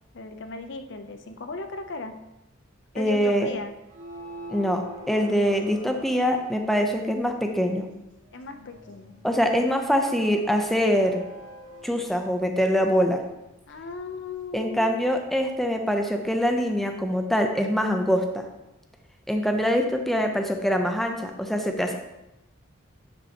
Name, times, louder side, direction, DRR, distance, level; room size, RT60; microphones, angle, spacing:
voice 1, 0.1-2.2 2.9-3.7 8.3-9.2 13.7-15.0, left 3 dB, 55° left, 7 dB, 0.6 m, -36 dB
voice 2, 2.9-3.5 4.5-7.9 9.2-11.2 11.8-13.2 14.5-18.5 19.3-22.0, equal, ahead, 4 dB, 0.5 m, -24 dB
sound 1, 3.7-6.8 8.3-12.2, right 1 dB, 40° right, 1.6 m, -44 dB
9.6 x 5.3 x 2.9 m, 0.93 s
head